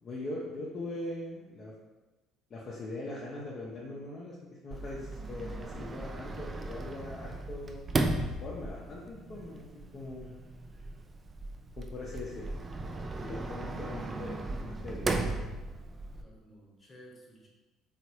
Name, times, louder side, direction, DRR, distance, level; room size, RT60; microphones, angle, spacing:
voice 1, 0.0-1.7 2.5-4.4 4.6-7.8 8.2-10.3 11.7-12.6 13.2-15.1, left 2 dB, 45° left, -5 dB, 0.5 m, -41 dB
Sliding door, 4.7-16.2, right 2 dB, 30° right, 0.3 m, -36 dB
voice 2, 16.1-17.5, right 1 dB, 30° left, -3 dB, 1.0 m, -55 dB
2.9 x 2.4 x 3.0 m, 1.2 s
hypercardioid pair, 60°, 0 cm